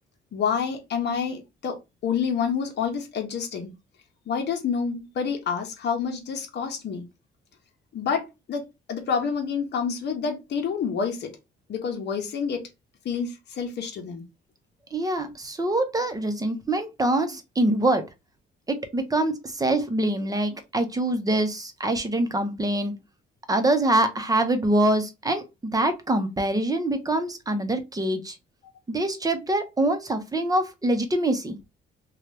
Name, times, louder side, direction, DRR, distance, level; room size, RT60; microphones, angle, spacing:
voice 1, 0.3-3.7 4.3-7.1 7.9-11.4 11.7-12.6 13.0-14.2, left 6 dB, 60° left, 0.9 m, -28 dB
voice 2, 14.9-18.0 18.7-22.9 23.5-28.4 28.9-31.5, right 1 dB, 20° right, 0.8 m, -24 dB
2.9 x 2.3 x 3.3 m
cardioid pair, 90°, 20 cm